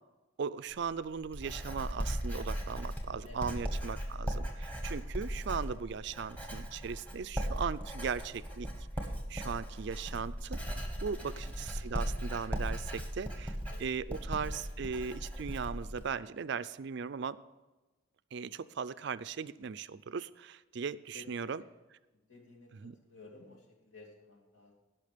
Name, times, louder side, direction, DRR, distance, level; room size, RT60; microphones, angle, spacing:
voice 1, 0.4-8.7 9.3-10.6 11.0-17.4 18.3-21.6 22.7-23.0, right 6 dB, 55° right, 15 dB, 0.4 m, -38 dB
Writing, 0.7-16.1, equal, 5° left, 1.6 m, -38 dB
voice 2, 3.2-3.7 11.1-11.6 13.7-14.5 16.4-16.6 21.1-21.7 22.1-24.7, left 2 dB, 70° left, -1 dB, 2.7 m, -55 dB
17.5 x 5.9 x 5.1 m, 1.2 s
head